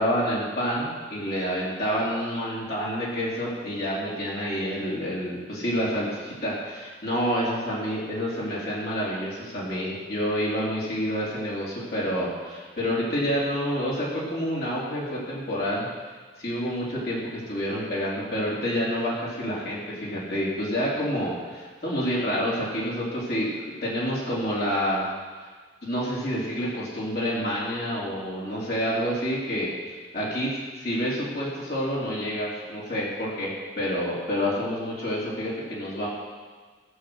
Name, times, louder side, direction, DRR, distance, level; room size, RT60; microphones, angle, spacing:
voice 1, 0.0-15.9 16.4-25.1 25.8-29.7 30.1-36.1, equal, 55° left, -7 dB, 3.9 m, -28 dB
17.5 x 6.5 x 8.0 m, 1.5 s
head